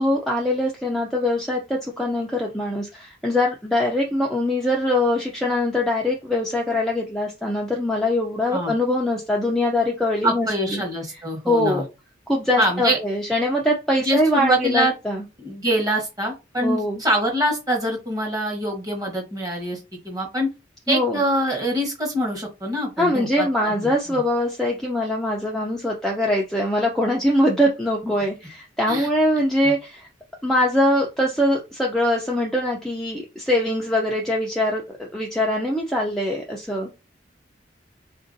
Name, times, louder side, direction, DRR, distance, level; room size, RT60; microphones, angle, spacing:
voice 1, 0.0-10.8 11.5-11.8 12.3-15.2 16.6-17.0 20.9-21.2 23.0-30.1 30.4-36.9, left 1 dB, ahead, -2 dB, 0.4 m, -22 dB
voice 2, 10.2-11.8 12.6-13.0 14.0-14.9 15.4-19.8 20.0-20.5 20.9-24.2 28.0-28.1 28.9-29.1 29.6-29.7, equal, 20° right, 0 dB, 1.1 m, -24 dB
3.7 x 2.5 x 2.5 m, 0.26 s
head